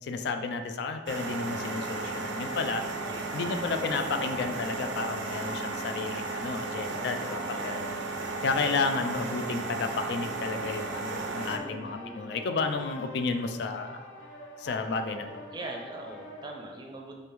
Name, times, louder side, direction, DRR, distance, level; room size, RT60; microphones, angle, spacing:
voice 1, 0.0-2.8 3.3-7.9 8.4-14.0 14.6-15.4, left 4 dB, 60° left, 7 dB, 0.3 m, -32 dB
sound 1, 1.1-11.6, right 3 dB, 75° right, 0.5 m, -35 dB
sound 2, 1.5-16.5, left 1 dB, 85° left, 0.7 m, -45 dB
voice 2, 3.1-3.7 7.4-8.0 11.6-12.4 15.5-17.2, right 1 dB, 25° right, 1 dB, 0.5 m, -42 dB
5.2 x 3.3 x 3.0 m, 1.5 s
head